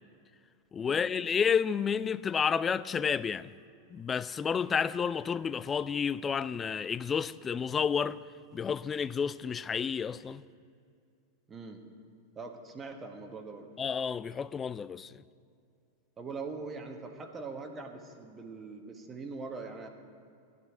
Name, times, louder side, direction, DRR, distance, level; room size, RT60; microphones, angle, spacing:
voice 1, 0.7-3.5 3.9-8.2 8.5-10.4 13.8-15.2, left 6 dB, 20° left, 0.3 m, -30 dB
voice 2, 11.5-11.8 12.3-13.7 16.2-19.9, right 4 dB, 20° right, 1.4 m, -42 dB
14.5 x 11.0 x 4.6 m
figure-of-eight pair, 90°, 0 cm